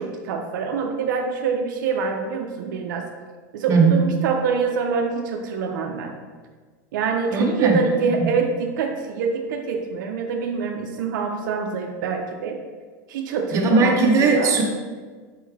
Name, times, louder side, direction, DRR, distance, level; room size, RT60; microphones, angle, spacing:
voice 1, 0.0-3.1 3.5-6.2 6.9-12.6 13.1-14.0 14.2-14.6, right 5 dB, 80° right, 3 dB, 0.5 m, -25 dB
voice 2, 3.7-4.0 7.3-7.8 8.0-8.3 13.5-14.6, right 4 dB, 30° right, 0 dB, 0.7 m, -18 dB
4.6 x 3.2 x 3.5 m, 1.5 s
supercardioid pair, 135°, 10 cm